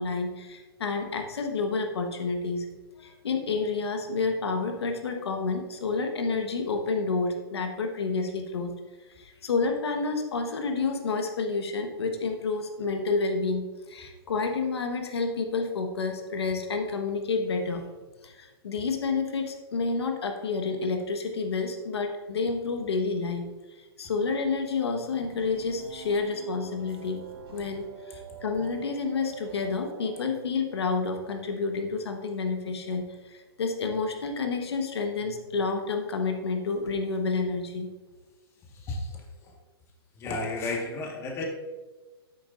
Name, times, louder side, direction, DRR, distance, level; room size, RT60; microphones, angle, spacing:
voice 1, 0.0-2.7 3.0-8.7 9.2-17.8 18.2-23.4 23.8-27.2 27.5-37.9, left 4 dB, 90° left, 4 dB, 1.3 m, -29 dB
sound 1, 25.2-30.2, right 8 dB, 65° right, 1.3 m, -46 dB
voice 2, 38.7-39.1 39.4-39.5 40.2-41.5, left 2 dB, 20° left, 0 dB, 1.5 m, -32 dB
10.5 x 9.3 x 2.5 m, 1.2 s
hypercardioid pair, 150°, 13 cm